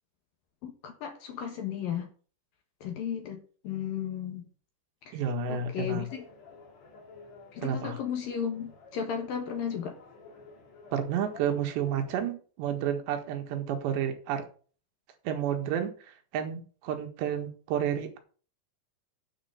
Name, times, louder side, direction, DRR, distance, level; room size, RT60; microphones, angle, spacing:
voice 1, 0.6-2.1 2.8-4.5 5.1-5.2 5.5-6.2 7.5-10.0, left 8 dB, 65° left, 4 dB, 2.8 m, -34 dB
voice 2, 5.1-6.1 7.6-8.0 10.9-14.5 15.3-18.2, right 8 dB, 80° right, 6 dB, 3.8 m, -31 dB
sound 1, 6.1-12.2, left 4 dB, 45° left, 3.8 m, -52 dB
9.6 x 6.1 x 6.9 m, 0.40 s
omnidirectional pair, 5.0 m